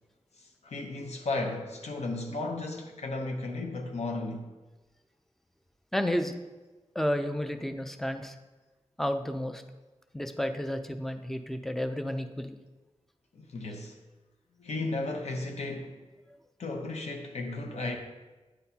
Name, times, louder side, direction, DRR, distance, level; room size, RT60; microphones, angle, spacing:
voice 1, 0.4-4.5 13.3-14.0 14.6-16.0 16.6-18.0, left 2 dB, 70° left, 0.7 m, -34 dB
voice 2, 5.9-6.3 7.0-8.3 9.0-9.6 10.1-12.6, equal, 5° left, 0.4 m, -31 dB
8.8 x 4.1 x 2.8 m
wide cardioid pair, 105°, 12 cm